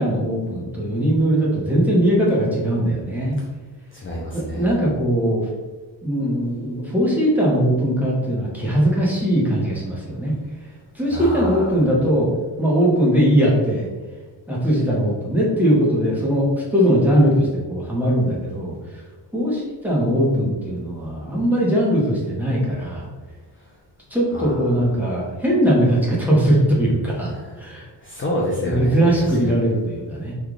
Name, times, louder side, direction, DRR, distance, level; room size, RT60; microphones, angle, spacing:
voice 1, 0.0-3.4 4.3-5.5 6.0-10.3 10.9-12.3 12.6-13.9 14.5-19.0 19.3-23.1 24.1-27.3 27.6-27.9 28.6-30.3, equal, 5° right, -5 dB, 0.8 m, -20 dB
voice 2, 3.9-4.7 11.1-11.7 24.3-24.5 27.3-27.5 28.0-29.0, equal, 30° left, -5 dB, 0.5 m, -27 dB
3.2 x 2.3 x 3.7 m, 1.3 s
wide cardioid pair, 140°, 44 cm